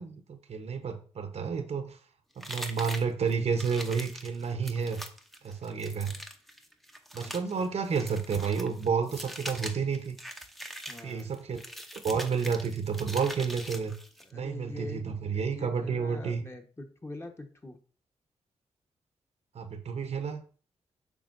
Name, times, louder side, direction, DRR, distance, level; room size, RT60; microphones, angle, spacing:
voice 1, 0.0-2.0 2.4-5.0 5.4-6.2 7.1-10.2 11.0-11.6 12.0-13.9 14.3-16.4 19.5-20.4, right 6 dB, 60° right, 0.8 m, -30 dB
sound 1, 2.4-14.3, equal, ahead, 0.7 m, -43 dB
voice 2, 7.2-7.7 10.9-11.3 14.2-15.1 15.3-17.8, left 2 dB, 20° left, 1.2 m, -44 dB
7.1 x 5.1 x 2.6 m
cardioid pair, 60°, 12 cm